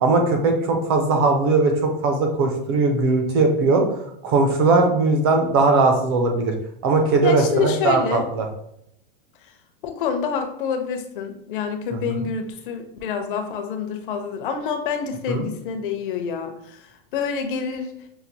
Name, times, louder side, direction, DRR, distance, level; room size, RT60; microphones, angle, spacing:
voice 1, 0.0-3.8 4.2-6.5 6.8-8.5 15.3-15.5, right 3 dB, 25° right, 3 dB, 0.4 m, -19 dB
voice 2, 7.2-8.3 9.8-16.8 17.1-17.9, left 6 dB, 60° left, 5 dB, 0.7 m, -27 dB
5.7 x 2.3 x 2.7 m, 0.74 s
supercardioid pair, 175°, 30 cm